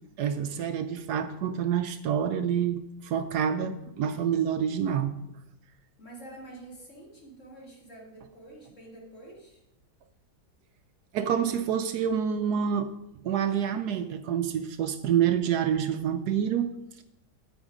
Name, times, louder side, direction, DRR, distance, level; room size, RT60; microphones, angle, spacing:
voice 1, 0.2-5.2 11.1-12.9 13.2-17.0, right 8 dB, 70° right, 9 dB, 1.1 m, -27 dB
voice 2, 6.0-9.6, right 2 dB, 45° left, -2 dB, 2.9 m, -47 dB
8.9 x 8.8 x 4.9 m, 0.85 s
omnidirectional pair, 1.9 m